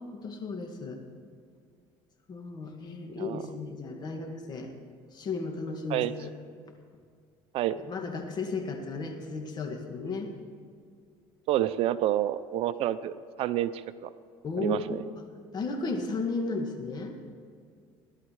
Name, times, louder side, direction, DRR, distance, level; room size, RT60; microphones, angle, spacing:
voice 1, 0.1-1.0 2.3-4.7 5.1-6.3 7.9-10.3 14.4-15.0 15.5-17.2, left 4 dB, 40° left, 3 dB, 2.2 m, -34 dB
voice 2, 11.5-13.1 13.4-14.1 14.6-15.0, right 13 dB, 60° right, 14 dB, 0.6 m, -28 dB
17.5 x 11.5 x 4.8 m, 2.1 s
supercardioid pair, 110°, 11 cm